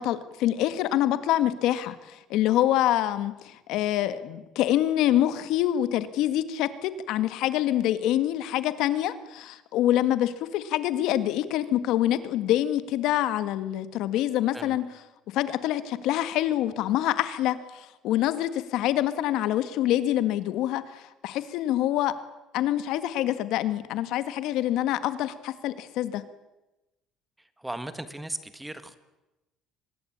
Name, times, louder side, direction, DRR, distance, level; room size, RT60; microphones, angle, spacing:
voice 1, 0.0-14.9 15.3-22.2 22.5-26.2, left 13 dB, 65° left, 13 dB, 1.7 m, -26 dB
voice 2, 27.6-28.9, right 1 dB, 5° right, 12 dB, 1.4 m, -37 dB
25.0 x 20.5 x 8.8 m, 1.0 s
cardioid pair, 160°, 0 cm